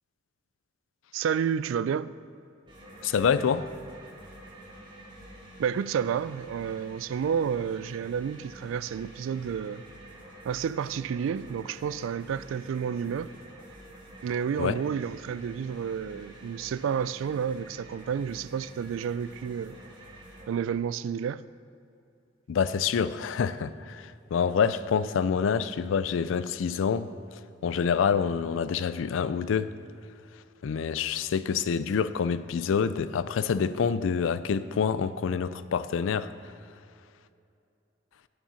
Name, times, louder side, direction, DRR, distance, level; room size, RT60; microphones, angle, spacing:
voice 1, 1.1-2.2 5.6-9.8 10.4-13.3 14.2-19.8 20.5-21.5, right 7 dB, 90° right, 0.3 m, -30 dB
sound 1, 2.7-20.5, right 1 dB, 25° right, 1.5 m, -48 dB
voice 2, 3.0-3.7 14.6-14.8 22.5-29.7 30.6-36.5, left 6 dB, 85° left, 0.4 m, -27 dB
8.6 x 7.3 x 5.7 m
head